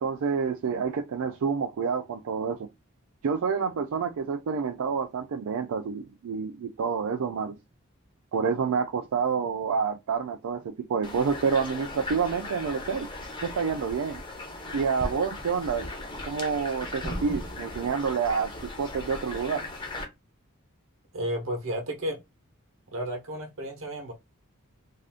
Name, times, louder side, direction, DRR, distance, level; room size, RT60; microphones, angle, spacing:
voice 1, 0.0-2.7 3.2-7.6 8.3-13.1 13.4-14.2 14.7-15.9 16.2-19.7, right 6 dB, 85° right, 0.4 m, -28 dB
sound 1, 11.0-20.0, left 2 dB, 20° left, 0.5 m, -37 dB
voice 2, 21.1-22.2 22.9-24.1, equal, 70° right, 0.9 m, -32 dB
2.5 x 2.4 x 3.4 m
head